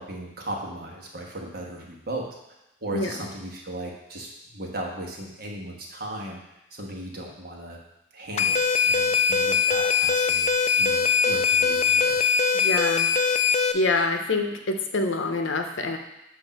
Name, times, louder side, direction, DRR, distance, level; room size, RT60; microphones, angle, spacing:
voice 1, 0.0-2.3 2.8-4.3 4.5-6.4 6.7-7.8 8.1-12.2, right 1 dB, 50° right, -1 dB, 1.2 m, -36 dB
sound 1, 8.4-13.7, left 6 dB, 35° left, 0.3 m, -22 dB
voice 2, 12.5-13.1 13.7-16.0, left 3 dB, 80° left, 5 dB, 0.7 m, -26 dB
7.9 x 2.6 x 5.7 m, 0.91 s
head